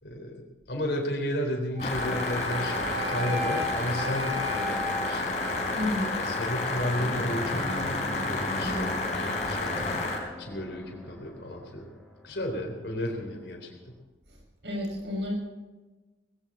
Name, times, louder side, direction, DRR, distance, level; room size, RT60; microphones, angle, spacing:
voice 1, 0.0-5.3 6.2-10.0 10.4-11.9 12.2-13.9, left 1 dB, 75° left, 1 dB, 3.8 m, -33 dB
Wind instrument woodwind instrument, 1.7-6.0, left 1 dB, 40° right, 3.4 m, -36 dB
sound 1, 1.8-10.2, left 2 dB, 40° left, 4.3 m, -30 dB
voice 2, 5.7-6.1 8.7-8.9 14.3-14.4 14.6-15.3, left 1 dB, 75° right, -1 dB, 6.6 m, -31 dB
sound 2, 7.0-12.9, right 1 dB, ahead, 3.3 m, -40 dB
19.5 x 16.5 x 4.3 m, 1.2 s
head